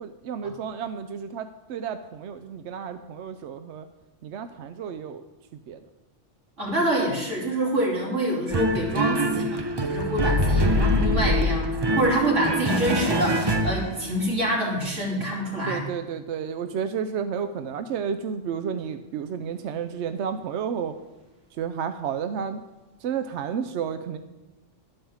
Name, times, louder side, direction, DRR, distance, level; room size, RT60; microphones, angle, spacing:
voice 1, 0.0-3.9 4.2-5.2 5.7-5.8 15.7-20.9 21.5-22.6 23.0-24.2, right 7 dB, 70° right, 9 dB, 0.8 m, -31 dB
voice 2, 6.6-9.6 9.9-15.8, right 1 dB, 90° right, -4 dB, 3.5 m, -26 dB
sound 1, 8.5-14.3, equal, 35° right, 0.4 m, -24 dB
11.5 x 5.5 x 7.1 m, 1.1 s
omnidirectional pair, 1.2 m